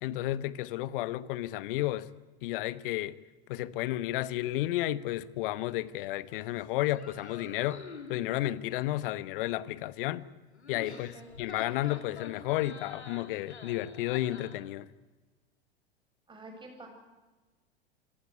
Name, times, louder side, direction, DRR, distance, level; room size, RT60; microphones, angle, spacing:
voice 1, 0.0-2.1 2.4-3.2 3.5-7.8 8.1-10.3 10.7-14.9, left 15 dB, 55° left, 1.2 m, -32 dB
sound 1, 6.9-8.2 10.5-14.6, left 4 dB, 85° left, 3.2 m, -47 dB
voice 2, 10.9-11.3 16.3-16.9, right 2 dB, 15° right, 7.7 m, -48 dB
25.5 x 18.0 x 9.5 m
figure-of-eight pair, 90°, 33 cm